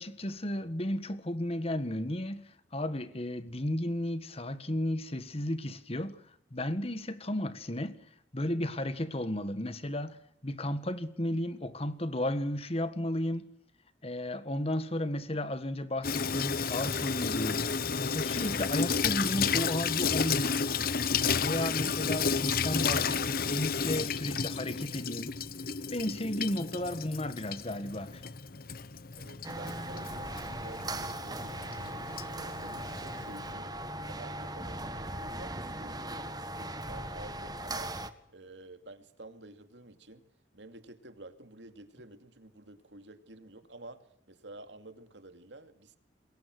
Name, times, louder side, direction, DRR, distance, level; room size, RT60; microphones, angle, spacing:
voice 1, 0.0-6.2 6.5-8.0 8.3-10.2 10.4-13.5 14.0-17.7 18.0-20.7 21.4-25.4 25.9-28.2, left 1 dB, 35° left, 1.7 m, -33 dB
Water tap faucet / Sink (filling or washing), 16.0-33.5, left 6 dB, 55° left, 1.0 m, -32 dB
voice 2, 29.2-37.9 38.3-40.2 40.5-46.0, right 2 dB, 80° right, 2.6 m, -50 dB
sound 1, 29.4-38.1, right 1 dB, 20° right, 1.6 m, -39 dB
28.0 x 21.5 x 6.3 m
head